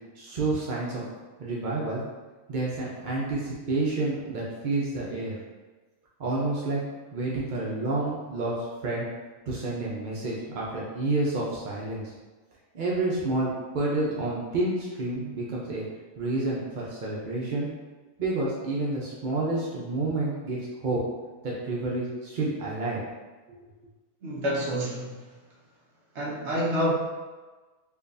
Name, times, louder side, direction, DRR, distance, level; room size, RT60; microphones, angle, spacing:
voice 1, 0.2-1.0 1.4-2.0 2.5-5.3 6.2-6.8 7.1-8.5 8.8-9.0 9.5-12.1 12.7-15.8 16.2-17.7 18.2-21.0 21.4-23.0 23.5-23.6, right 2 dB, 75° right, -5 dB, 0.4 m, -29 dB
voice 2, 24.2-25.3 26.1-26.9, equal, 55° right, -4 dB, 0.9 m, -28 dB
4.6 x 2.3 x 2.6 m, 1.3 s
omnidirectional pair, 1.6 m